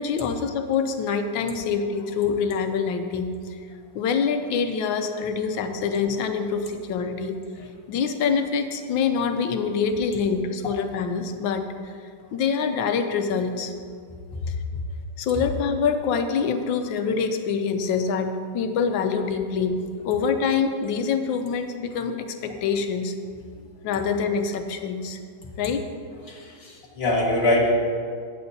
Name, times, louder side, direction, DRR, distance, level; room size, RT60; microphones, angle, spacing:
voice 1, 0.0-3.6 3.9-11.9 12.3-13.7 14.5-14.6 15.2-23.2 23.8-25.2 25.6-25.9, left 5 dB, 80° left, 7 dB, 1.4 m, -25 dB
voice 2, 26.3-27.8, left 1 dB, 35° left, -3 dB, 1.6 m, -23 dB
16.5 x 7.8 x 2.7 m, 2.1 s
omnidirectional pair, 2.1 m